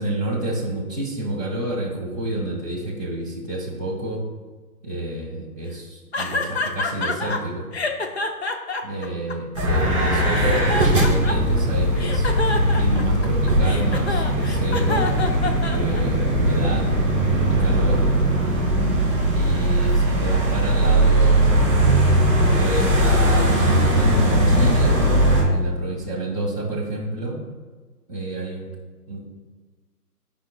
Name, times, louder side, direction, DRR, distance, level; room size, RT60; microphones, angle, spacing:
voice 1, 0.0-4.2 4.8-7.7 8.8-15.1 15.6-16.9 17.6-18.1 19.3-21.6 22.5-25.0 25.5-27.4 28.1-28.7 29.1-29.3, right 2 dB, 10° left, -6 dB, 0.8 m, -28 dB
sound 1, 6.1-7.4 7.7-9.9 10.3-11.6 12.0-16.2, left 3 dB, 45° left, 0.6 m, -27 dB
sound 2, 9.5-25.4, right 1 dB, 5° right, 1.9 m, -19 dB
11.5 x 5.1 x 2.3 m, 1.4 s
hypercardioid pair, 165°, 47 cm